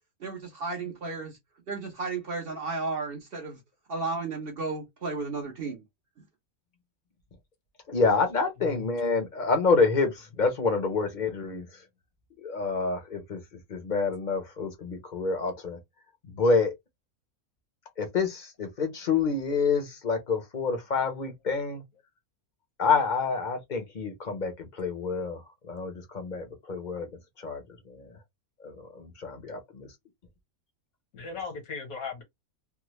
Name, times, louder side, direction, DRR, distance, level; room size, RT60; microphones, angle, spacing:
voice 1, 0.2-1.4 1.7-3.6 3.9-5.8, right 3 dB, 45° right, 0.9 m, -33 dB
voice 2, 7.9-11.7 12.4-13.4 13.7-15.8 16.4-16.7 18.0-21.8 22.8-24.5 24.8-25.4 25.7-27.1 27.4-27.6 28.0-28.1 28.6-29.9, left 4 dB, 40° left, 0.8 m, -27 dB
voice 3, 8.6-8.9 31.1-32.2, left 5 dB, 75° left, 1.6 m, -37 dB
3.5 x 2.1 x 3.0 m
omnidirectional pair, 1.5 m